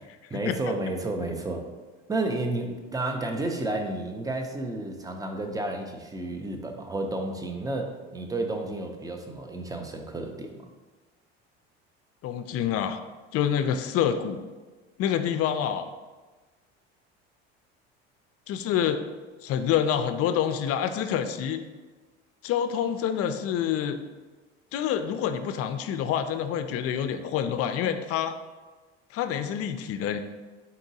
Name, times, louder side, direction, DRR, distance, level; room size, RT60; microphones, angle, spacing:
voice 1, 0.3-1.6 2.1-10.7, right 2 dB, 10° right, 4 dB, 0.5 m, -31 dB
voice 2, 12.2-13.0 13.3-14.4 15.0-15.9 18.5-19.0 19.4-21.6 22.4-24.0 24.7-28.3 29.1-30.2, left 9 dB, 50° left, 9 dB, 0.4 m, -27 dB
4.1 x 3.5 x 2.7 m, 1.3 s
supercardioid pair, 85°, 32 cm